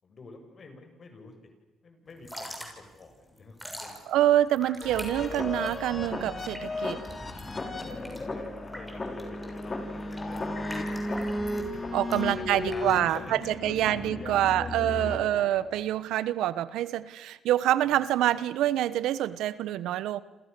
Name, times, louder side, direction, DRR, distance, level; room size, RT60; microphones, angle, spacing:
voice 1, 0.0-1.3 1.8-3.9 7.9-10.0 10.2-11.3 11.7-11.8 12.1-15.4 17.8-17.9, left 3 dB, 45° left, 5 dB, 6.9 m, -46 dB
Drip / Trickle dribble, 2.1-13.7, equal, ahead, 6.8 m, -45 dB
voice 2, 4.1-7.0 11.9-20.2, right 12 dB, 85° right, 16 dB, 1.1 m, -26 dB
sound 1, 4.8-15.8, left 2 dB, 30° left, 5.2 m, -35 dB
29.0 x 28.0 x 6.9 m, 1.1 s
cardioid pair, 90°, 0 cm